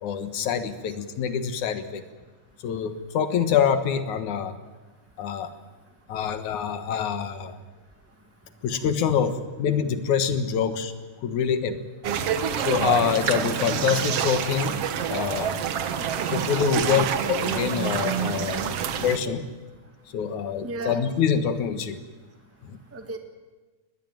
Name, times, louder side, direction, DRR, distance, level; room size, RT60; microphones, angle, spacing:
voice 1, 0.0-2.0 2.6-4.6 5.2-5.5 6.1-7.6 8.6-10.9 11.2-11.8 12.6-14.8 15.1-15.6 16.3-19.5 20.1-22.0 22.7-22.8, left 7 dB, 70° left, 10 dB, 2.8 m, -25 dB
sound 1, 12.0-19.2, right 8 dB, 60° right, 1.9 m, -27 dB
voice 2, 15.9-17.1 20.6-21.0 22.9-23.2, right 2 dB, 5° right, 6 dB, 1.2 m, -36 dB
22.0 x 20.5 x 9.1 m, 1.3 s
omnidirectional pair, 3.7 m